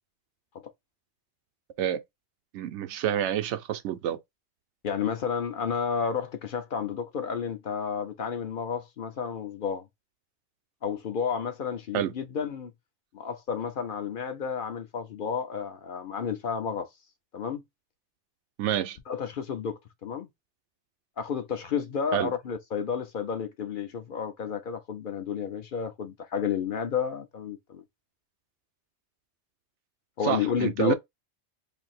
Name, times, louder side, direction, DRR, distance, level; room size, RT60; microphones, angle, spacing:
voice 1, 2.5-4.2 11.9-12.1 18.6-19.0 22.1-22.3 30.2-30.9, right 11 dB, 90° right, 0.9 m, -28 dB
voice 2, 4.8-9.9 10.8-12.7 13.1-16.9 17.3-17.6 19.1-20.3 21.2-27.8 30.2-30.9, left 7 dB, 55° left, 0.7 m, -31 dB
2.7 x 2.6 x 4.1 m
omnidirectional pair, 1.1 m